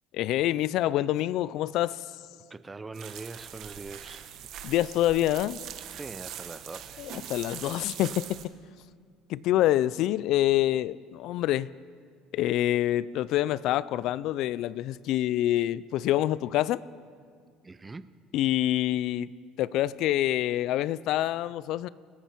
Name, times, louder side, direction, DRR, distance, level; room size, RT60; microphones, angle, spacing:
voice 1, 0.1-2.0 4.6-5.6 7.0-8.2 9.3-11.7 12.3-16.8 18.3-19.3 19.6-21.9, left 14 dB, 60° left, 19 dB, 0.3 m, -26 dB
voice 2, 2.5-4.3 5.9-7.1 17.6-18.1, right 3 dB, 15° right, 14 dB, 0.5 m, -42 dB
sound 1, 2.9-8.5, right 10 dB, 55° right, 1.2 m, -42 dB
27.0 x 10.0 x 4.5 m, 2.1 s
cardioid pair, 135°, 0 cm